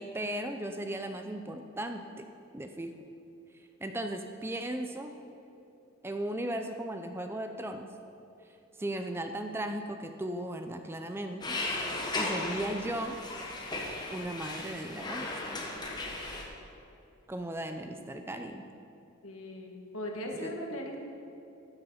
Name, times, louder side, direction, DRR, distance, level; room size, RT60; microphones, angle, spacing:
voice 1, 0.0-2.3 2.5-2.9 3.5-5.1 6.0-7.9 8.4-11.6 12.1-13.2 14.1-15.7 17.3-18.6 20.3-20.8, right 1 dB, 10° right, 6 dB, 0.4 m, -37 dB
sound 1, 11.4-16.4, left 2 dB, 20° left, 1.1 m, -36 dB
voice 2, 19.2-21.0, left 1 dB, 75° left, 1 dB, 1.6 m, -38 dB
13.0 x 6.8 x 5.5 m, 2.8 s
head